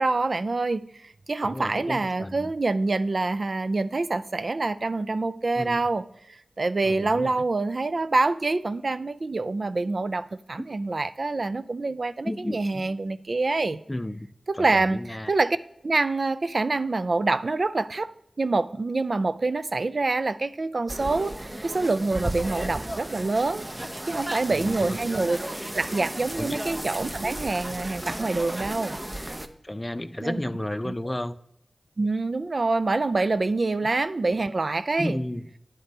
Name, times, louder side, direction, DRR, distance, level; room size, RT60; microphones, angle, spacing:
voice 1, 0.0-13.8 14.5-15.0 15.3-15.6 15.8-18.1 18.4-23.7 24.0-25.4 25.7-29.0 30.2-30.4 30.9-31.0 32.0-35.2, right 3 dB, 60° right, 14 dB, 0.4 m, -26 dB
voice 2, 1.4-2.5 5.6-5.8 6.8-7.3 10.6-10.7 12.2-12.8 13.9-14.3 14.5-15.3 22.6-22.7 24.5-25.0 26.4-26.6 29.6-31.4 35.0-35.5, left 1 dB, 20° left, 13 dB, 0.4 m, -32 dB
sound 1, 20.9-29.5, right 1 dB, 25° right, 0.6 m, -34 dB
9.8 x 5.2 x 4.1 m, 0.77 s
wide cardioid pair, 50°, 0 cm